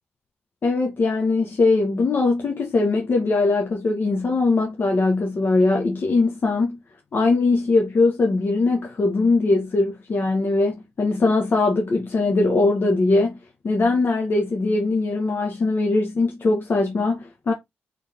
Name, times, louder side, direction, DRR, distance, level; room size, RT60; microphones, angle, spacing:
voice 1, 0.6-6.8 7.1-13.4 13.6-17.5, left 3 dB, 55° left, 1.1 m, -21 dB
3.8 x 3.5 x 3.4 m
cardioid pair, 60°, 4 cm